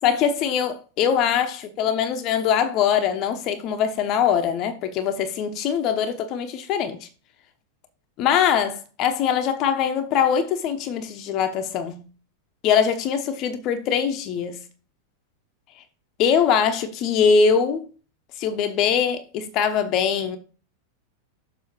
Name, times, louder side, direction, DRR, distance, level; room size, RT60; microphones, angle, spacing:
voice 1, 0.0-7.1 8.2-12.1 12.6-14.6 16.2-17.8 18.4-20.4, left 7 dB, 40° left, 1.0 m, -22 dB
7.2 x 4.4 x 6.1 m
figure-of-eight pair, 90°, 0 cm